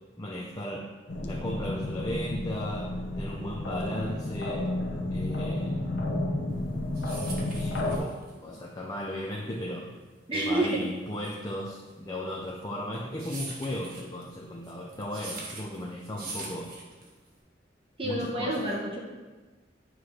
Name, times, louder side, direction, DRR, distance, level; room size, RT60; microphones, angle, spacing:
voice 1, 0.2-0.9 1.2-4.7 5.1-5.8 7.5-9.9 10.3-16.8 18.0-18.7, left 1 dB, 20° left, -1 dB, 0.6 m, -36 dB
sound 1, 1.1-8.0, left 1 dB, 85° left, 0.9 m, -31 dB
sound 2, 6.6-17.4, right 2 dB, 50° right, 1.4 m, -43 dB
voice 2, 10.3-10.8 18.0-19.0, right 1 dB, 30° right, -3 dB, 0.9 m, -28 dB
9.4 x 3.2 x 4.9 m, 1.3 s
head